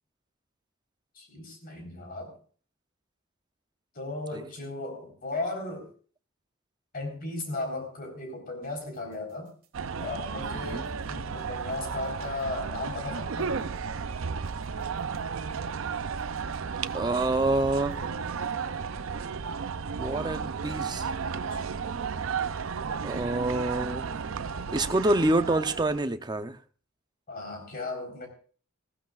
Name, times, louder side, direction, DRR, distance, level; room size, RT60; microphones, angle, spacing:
voice 1, 1.2-2.3 3.9-5.9 6.9-9.5 10.0-13.6 21.5-21.7 27.3-28.3, left 2 dB, 45° left, 3 dB, 4.3 m, -36 dB
sound 1, 8.6-10.1 10.5-12.9 13.2-19.0, right 1 dB, 45° right, 1.7 m, -53 dB
sound 2, 9.7-26.0, right 5 dB, 75° right, 0.6 m, -33 dB
voice 2, 10.5-10.8 16.9-18.0 19.9-21.1 23.0-24.1 24.7-26.6, right 2 dB, 20° right, 9 dB, 0.7 m, -27 dB
20.0 x 15.5 x 2.5 m, 0.41 s
head